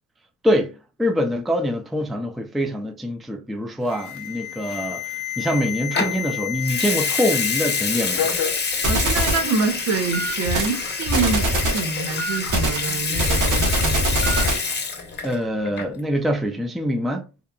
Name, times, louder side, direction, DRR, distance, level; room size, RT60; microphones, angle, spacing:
voice 1, 0.4-5.0 5.4-8.3 15.2-17.2, equal, ahead, 0.4 m, -24 dB
Alarm, 3.9-7.8 8.2-8.6 9.4-9.5 10.1-10.3 12.2-12.4 14.2-14.4, left 7 dB, 70° left, 0.7 m, -29 dB
Water tap faucet / Sink (filling or washing) / Liquid, 5.9-6.2 6.6-15.4 15.6-16.0, left 5 dB, 35° left, 0.9 m, -27 dB
voice 2, 8.8-14.2, right 4 dB, 60° right, 0.8 m, -26 dB
sound 1, 8.8-9.5 10.4-10.7 11.1-11.9 12.5-14.7, right 1 dB, 85° right, 1.1 m, -22 dB
2.9 x 2.3 x 2.2 m
cardioid pair, 90°, 30 cm